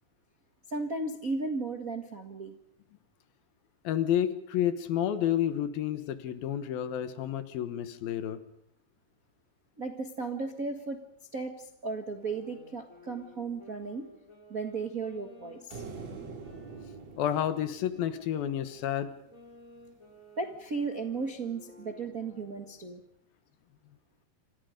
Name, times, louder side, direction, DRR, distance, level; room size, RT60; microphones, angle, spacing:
voice 1, 0.7-2.5 9.8-11.0 11.3-14.1 14.5-15.8 20.4-23.0, right 3 dB, 65° right, 6 dB, 0.8 m, -35 dB
voice 2, 3.8-8.4 17.2-19.1, left 10 dB, 70° left, 11 dB, 2.9 m, -30 dB
sound 1, 12.0-17.4 17.9-22.8, left 1 dB, 20° left, 4.6 m, -54 dB
sound 2, 15.7-19.1, right 4 dB, 45° right, 3.5 m, -45 dB
28.0 x 26.5 x 5.2 m, 0.70 s
omnidirectional pair, 4.8 m